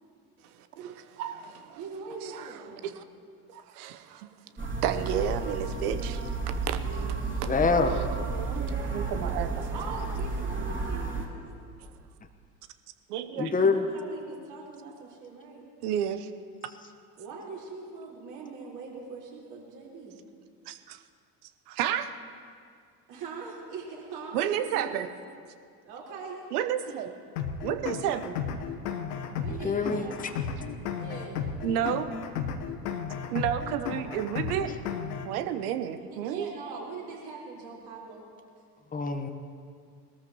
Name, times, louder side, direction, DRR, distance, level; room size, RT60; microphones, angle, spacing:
voice 1, 0.6-1.8 2.3-2.5 2.8-3.0 3.5-4.3 4.6-6.2 6.5-6.8 7.4-7.5 7.8-8.6 8.9-9.7 13.1-13.5 15.8-16.3 20.7-21.0 21.7-22.1 24.3-25.1 26.5-27.1 27.6-28.4 31.6-32.1 33.3-34.7 35.2-36.5, right 10 dB, 70° right, 9 dB, 0.9 m, -31 dB
voice 2, 1.8-2.9 6.8-7.6 9.7-11.4 13.2-15.6 17.2-20.2 23.1-25.1 25.8-26.4 26.8-27.2 29.3-30.4 30.9-31.4 33.8-34.3 36.0-38.3, right 4 dB, 50° right, -4 dB, 4.3 m, -42 dB
sound 1, 4.6-11.3, right 3 dB, 25° right, 2.8 m, -32 dB
voice 3, 7.5-8.0 13.4-13.9 29.5-30.3 38.9-39.3, left 4 dB, 15° left, 6 dB, 1.1 m, -26 dB
sound 2, 27.4-35.4, left 7 dB, 75° left, 1.1 m, -34 dB
21.0 x 13.5 x 3.0 m, 2.2 s
hypercardioid pair, 65°, 47 cm